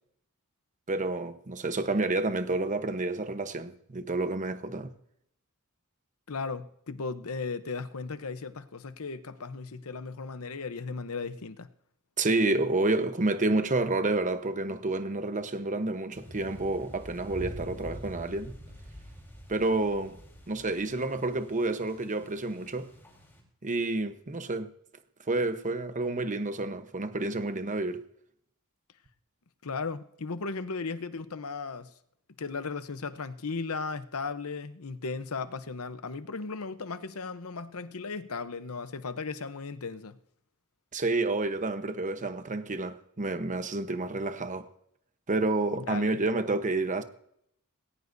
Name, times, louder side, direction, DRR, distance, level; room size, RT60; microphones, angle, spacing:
voice 1, 0.9-4.9 12.2-18.5 19.5-20.2 20.5-22.9 23.6-24.7 25.3-28.0 40.9-44.7 45.3-47.0, right 2 dB, 35° right, 1.0 m, -29 dB
voice 2, 6.3-11.7 29.6-31.9 32.4-40.2 45.7-46.2, left 4 dB, 75° left, 0.9 m, -36 dB
sound 1, 16.1-23.4, equal, 10° left, 3.9 m, -46 dB
19.5 x 17.5 x 2.7 m
head